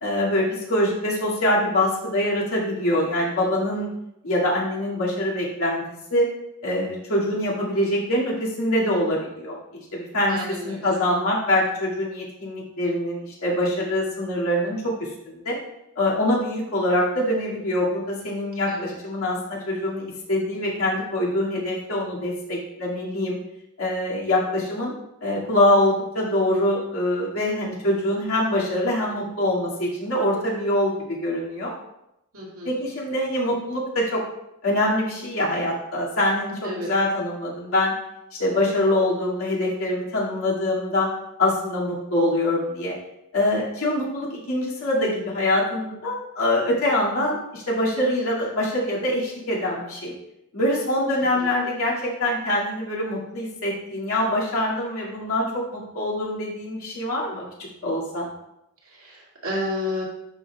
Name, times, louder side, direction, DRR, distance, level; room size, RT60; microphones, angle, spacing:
voice 1, 0.0-3.9 4.2-5.8 6.1-6.3 6.6-9.6 9.9-15.6 16.0-23.4 23.8-24.9 25.2-31.7 32.6-34.2 34.6-37.9 38.3-41.1 41.4-43.0 43.3-50.1 50.5-57.4 57.8-58.3, left 1 dB, 75° left, -5 dB, 2.3 m, -24 dB
voice 2, 10.3-10.9 18.7-18.9 32.3-32.7 36.6-36.9 51.3-51.5 58.9-60.0, left 1 dB, 75° right, -5 dB, 2.4 m, -31 dB
11.0 x 5.5 x 2.4 m, 0.84 s
head